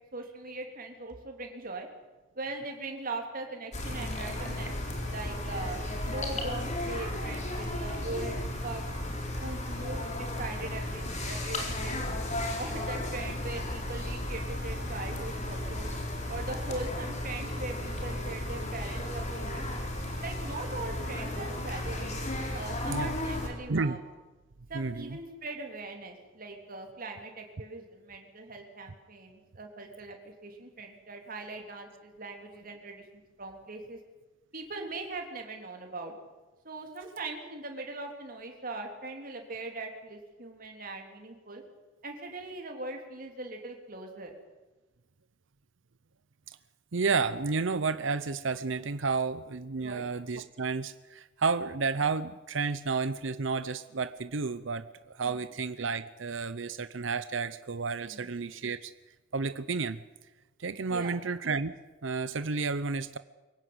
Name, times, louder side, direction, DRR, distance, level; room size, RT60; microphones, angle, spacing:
voice 1, 0.1-1.9 2.4-4.7 5.0-8.4 8.6-8.9 9.4-12.0 12.6-15.9 16.3-19.7 20.2-22.1 22.5-24.0 24.7-33.0 33.4-34.0 34.5-36.1 36.6-41.6 42.0-44.4 49.8-50.0 55.2-55.4 58.0-58.3 60.9-61.1, right 2 dB, 45° right, 3 dB, 3.6 m, -40 dB
sound 1, 3.7-23.5, left 1 dB, 35° left, 4.3 m, -34 dB
voice 2, 23.7-24.0 24.7-25.2 46.9-54.8 55.1-58.9 59.3-60.0 60.6-61.7 62.0-63.2, right 4 dB, 70° right, 13 dB, 0.8 m, -31 dB
24.0 x 16.5 x 9.7 m, 1.2 s
head